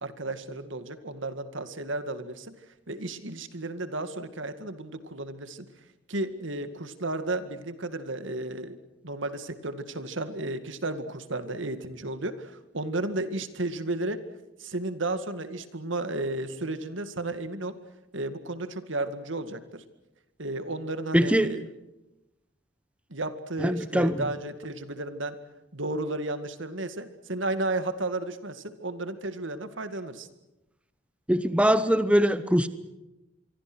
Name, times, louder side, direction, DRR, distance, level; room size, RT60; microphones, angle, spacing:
voice 1, 0.0-2.6 2.9-5.7 6.1-14.2 14.6-17.8 18.1-19.8 20.4-21.7 23.1-25.4 25.7-30.3, right 2 dB, 85° right, 10 dB, 2.2 m, -33 dB
voice 2, 21.1-21.5 23.6-24.2 31.3-32.7, equal, 5° right, 12 dB, 0.9 m, -22 dB
27.0 x 24.0 x 6.3 m, 0.97 s
head